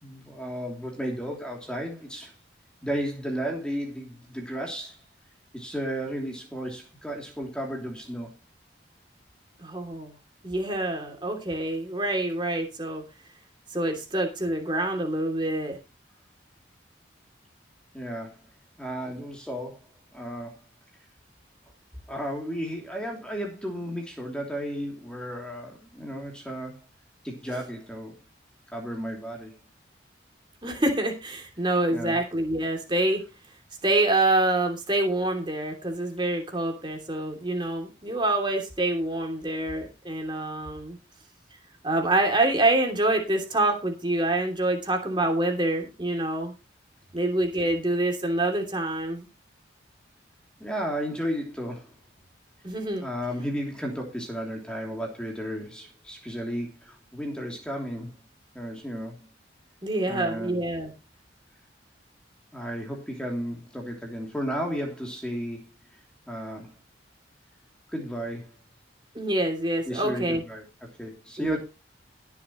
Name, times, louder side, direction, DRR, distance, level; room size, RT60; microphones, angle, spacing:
voice 1, 0.0-2.3 2.8-5.0 5.5-8.3 17.9-18.4 18.8-20.6 22.1-26.8 27.2-28.2 28.7-29.6 31.9-32.2 50.6-52.0 53.0-58.2 58.5-59.3 60.1-60.6 62.5-66.0 66.3-66.7 67.9-68.5 69.9-71.6, equal, 5° left, 0 dB, 3.1 m, -34 dB
voice 2, 9.6-10.1 10.4-13.0 13.7-15.8 30.6-33.2 33.8-41.0 41.8-46.5 47.1-49.3 52.6-53.1 59.8-60.9 69.1-70.4 71.4-71.6, right 2 dB, 25° right, 2 dB, 3.0 m, -26 dB
20.5 x 7.2 x 3.1 m, 0.28 s
head